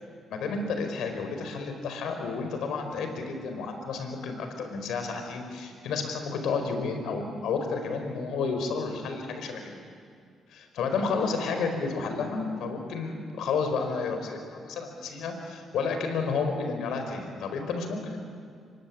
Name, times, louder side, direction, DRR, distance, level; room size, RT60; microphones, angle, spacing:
voice 1, 0.3-9.8 10.5-18.2, left 4 dB, 80° left, 6 dB, 4.8 m, -31 dB
25.5 x 23.5 x 9.7 m, 2.2 s
cardioid pair, 90°, 0 cm